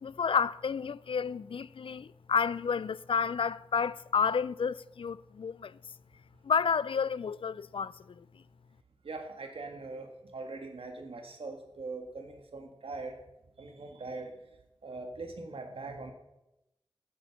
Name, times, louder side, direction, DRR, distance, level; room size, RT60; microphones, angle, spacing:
voice 1, 0.0-5.8 6.4-8.2, left 6 dB, 70° left, 0.4 m, -31 dB
voice 2, 9.0-13.2 13.6-14.4 14.8-16.1, right 3 dB, 85° right, 1.8 m, -41 dB
11.5 x 9.3 x 7.1 m
wide cardioid pair, 50°, 9 cm